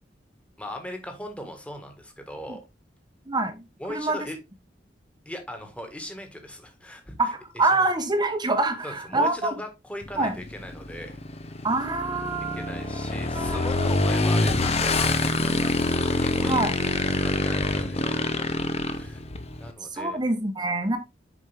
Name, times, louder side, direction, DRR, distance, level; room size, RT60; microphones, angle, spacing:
voice 1, 0.6-2.6 3.8-4.4 5.3-7.2 7.5-7.9 8.8-11.2 12.5-15.8 16.1-16.6 17.2-18.5 18.9-19.2 19.5-20.2, left 1 dB, 5° left, 1.7 m, -39 dB
voice 2, 3.3-4.2 7.2-9.5 10.2-10.4 11.6-12.8 13.3-13.9 16.4-16.7 19.9-21.0, right 2 dB, 25° right, 1.0 m, -26 dB
Motorcycle / Engine, 10.0-19.7, left 2 dB, 35° left, 0.8 m, -26 dB
7.6 x 5.2 x 3.5 m
head